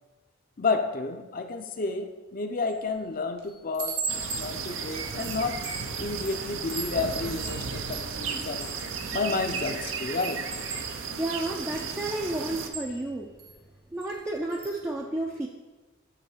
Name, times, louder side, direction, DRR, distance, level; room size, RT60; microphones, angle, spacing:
voice 1, 0.6-4.0 4.4-5.6 6.0-8.7 9.1-10.4, left 3 dB, 45° left, 7 dB, 0.6 m, -30 dB
Chime, 2.7-3.0 3.4-9.7 10.1-13.5 14.0-14.2 14.5-14.8, right 5 dB, 50° right, 0.9 m, -39 dB
sound 1, 4.1-12.7, right 5 dB, 75° right, 0.6 m, -34 dB
voice 2, 11.2-13.3 13.9-15.5, right 2 dB, 10° right, -1 dB, 0.4 m, -31 dB
8.0 x 3.1 x 6.2 m, 1.2 s
head